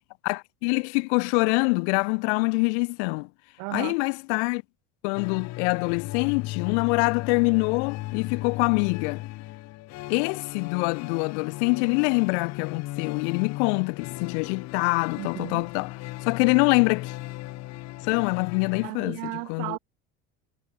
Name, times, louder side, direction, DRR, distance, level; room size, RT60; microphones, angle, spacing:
voice 1, 0.2-3.3 3.7-4.6 5.0-9.2 10.1-17.1 18.0-19.8, left 34 dB, 85° left, 0.7 m, -25 dB
voice 2, 3.6-4.0 15.2-15.6 18.8-19.8, right 40 dB or more, 70° right, 0.9 m, -34 dB
sound 1, 5.1-18.9, left 18 dB, 50° left, 2.3 m, -36 dB
cardioid pair, 150°, 33 cm